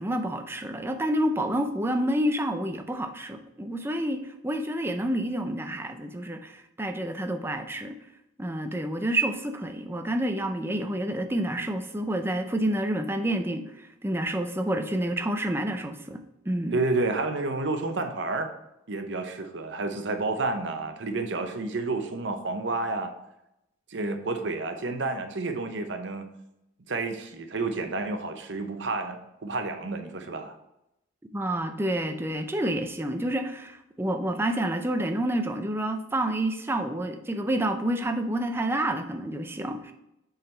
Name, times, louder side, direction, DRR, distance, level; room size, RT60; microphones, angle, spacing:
voice 1, 0.0-8.0 8.4-16.2 16.5-16.8 31.3-39.9, right 1 dB, 10° right, 6 dB, 0.4 m, -29 dB
voice 2, 16.7-18.5 18.9-23.1 23.9-26.3 26.9-30.5, right 3 dB, 60° right, 7 dB, 0.7 m, -30 dB
6.6 x 4.0 x 4.3 m, 0.87 s
head